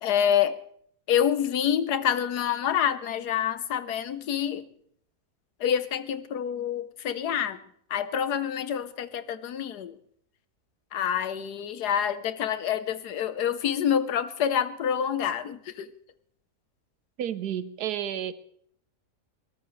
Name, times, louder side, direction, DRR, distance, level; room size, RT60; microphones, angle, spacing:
voice 1, 0.0-0.6 1.1-4.7 5.6-7.6 7.9-10.0 10.9-15.9, left 9 dB, 80° left, 13 dB, 1.4 m, -27 dB
voice 2, 17.2-18.3, right 10 dB, 80° right, 14 dB, 1.4 m, -31 dB
22.0 x 19.0 x 3.2 m, 0.65 s
omnidirectional pair, 1.7 m